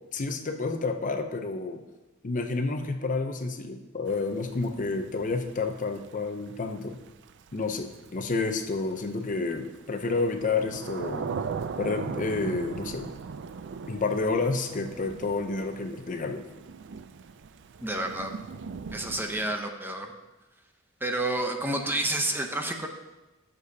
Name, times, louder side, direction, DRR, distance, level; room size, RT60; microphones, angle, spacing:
voice 1, 0.1-1.8 2.2-7.0 7.5-11.3 11.8-13.1 13.9-16.4, left 3 dB, 40° left, 6 dB, 0.6 m, -30 dB
Thunder / Rain, 4.1-19.6, right 5 dB, 60° right, 0.4 m, -39 dB
voice 2, 17.8-18.4 18.9-20.1 21.0-22.9, right 1 dB, 10° right, 3 dB, 0.7 m, -29 dB
14.0 x 6.8 x 2.8 m, 1.0 s
head